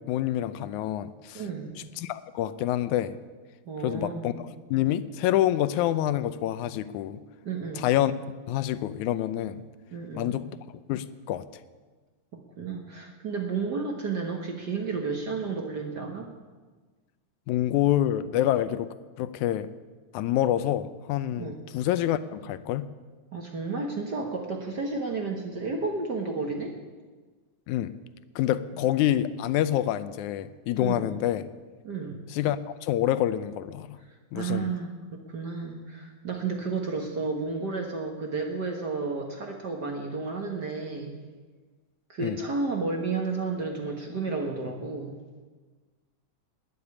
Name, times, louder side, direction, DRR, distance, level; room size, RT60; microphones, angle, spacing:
voice 1, 0.0-1.4 2.0-3.2 3.8-4.3 4.7-7.2 7.8-8.1 8.5-9.6 10.1-10.5 10.9-11.5 17.5-19.7 20.1-22.9 27.7-27.9 28.4-31.5 32.3-34.0 34.3-34.7 42.2-42.4, left 12 dB, 85° left, 14 dB, 2.1 m, -27 dB
voice 2, 1.3-1.8 3.6-4.4 7.4-7.8 9.9-10.4 12.6-16.3 21.4-21.6 23.3-26.7 28.7-28.8 30.8-31.1 31.8-32.2 34.3-41.2 42.1-45.2, right 4 dB, 45° right, 2 dB, 1.5 m, -32 dB
20.0 x 7.1 x 9.8 m, 1.4 s
omnidirectional pair, 3.4 m